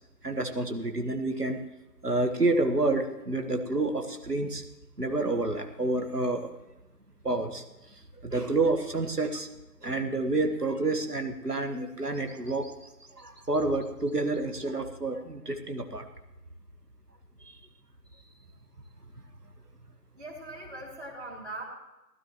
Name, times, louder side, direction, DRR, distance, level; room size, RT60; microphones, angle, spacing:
voice 1, 0.2-1.6 2.0-4.6 5.0-6.6 7.2-7.6 8.2-9.5 9.8-12.7 13.2-16.1 17.5-17.6, right 2 dB, 70° right, 6 dB, 1.8 m, -29 dB
voice 2, 20.2-21.6, right 2 dB, 40° right, -5 dB, 3.1 m, -40 dB
19.5 x 12.5 x 3.1 m, 1.0 s
figure-of-eight pair, 170°, 48 cm